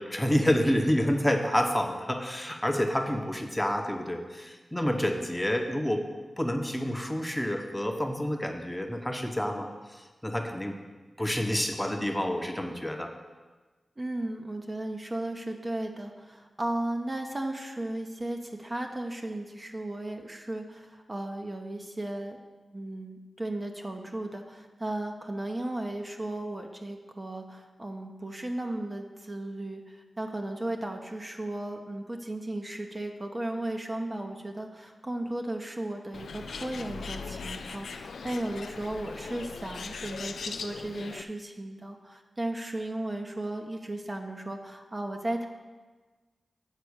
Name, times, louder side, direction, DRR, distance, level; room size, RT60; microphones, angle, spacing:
voice 1, 0.0-6.1 6.4-10.8 11.2-13.1, equal, 10° left, 3 dB, 0.9 m, -28 dB
voice 2, 14.0-22.4 22.7-45.4, right 1 dB, 30° right, 3 dB, 0.8 m, -35 dB
Bird, 36.1-41.2, left 5 dB, 85° left, 0.3 m, -39 dB
8.3 x 4.1 x 6.4 m, 1.3 s
cardioid pair, 45°, 0 cm